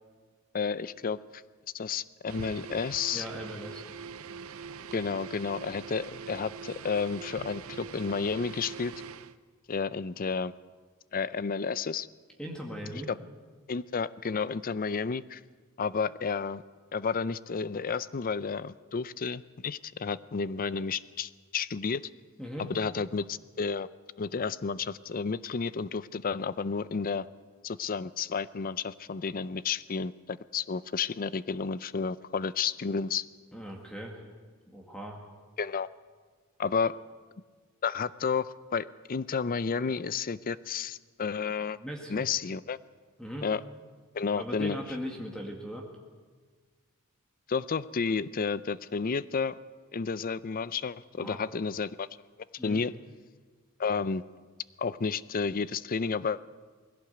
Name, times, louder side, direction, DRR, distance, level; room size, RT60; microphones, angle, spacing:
voice 1, 0.5-1.2 1.7-3.3 4.9-8.9 9.7-10.5 11.1-12.1 13.1-13.2 13.7-15.4 15.8-16.6 16.9-22.1 22.6-23.9 24.2-27.3 27.6-33.2 35.6-35.9 36.6-37.0 37.8-41.8 42.1-42.8 43.4-43.6 44.1-44.8 47.5-49.6 49.9-52.1 52.6-52.9 53.8-54.2 54.8-56.4, left 5 dB, 40° left, 17 dB, 0.5 m, -31 dB
sound 1, 2.3-9.4, right 5 dB, 75° right, 0.6 m, -43 dB
voice 2, 3.1-3.8 12.4-13.1 22.4-22.7 33.5-34.2 34.7-35.2 41.8-42.2 43.2-43.5 44.4-45.9 51.2-51.4 52.6-52.8, equal, 5° left, 0 dB, 1.9 m, -39 dB
20.5 x 16.5 x 8.0 m, 1.5 s
head